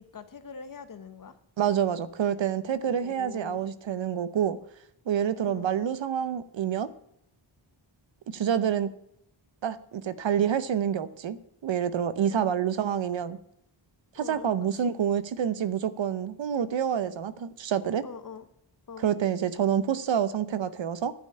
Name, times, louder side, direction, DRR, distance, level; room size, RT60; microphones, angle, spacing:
voice 1, 0.0-1.4 2.9-3.7 5.4-5.7 12.3-12.5 14.1-14.9 18.0-18.5 18.9-19.1, left 5 dB, 45° left, 11 dB, 1.0 m, -43 dB
voice 2, 1.6-4.6 5.1-6.9 8.3-8.9 9.6-13.4 14.1-18.0 19.0-21.1, right 8 dB, 70° right, 14 dB, 0.8 m, -27 dB
11.0 x 5.5 x 8.7 m, 0.76 s
wide cardioid pair, 145°, 47 cm